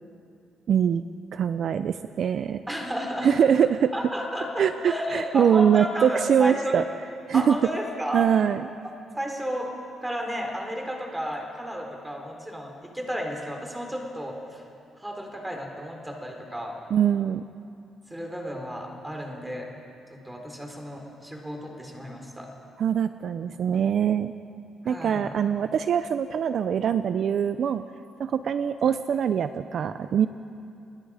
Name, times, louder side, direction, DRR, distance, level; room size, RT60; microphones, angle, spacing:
voice 1, 0.7-1.0 1.3-2.6 3.2-3.9 4.6-6.8 7.3-7.6 8.1-8.6 16.9-17.4 22.8-24.3 24.9-27.8 28.2-30.3, right 8 dB, 60° right, 11 dB, 0.6 m, -23 dB
voice 2, 2.7-3.4 3.9-6.8 7.3-8.3 9.2-9.7 10.0-14.6 15.0-16.8 18.1-19.7 20.2-22.5 24.8-25.3, equal, 10° right, 1 dB, 4.2 m, -33 dB
30.0 x 21.0 x 5.0 m, 2.5 s
cardioid pair, 105°, 0 cm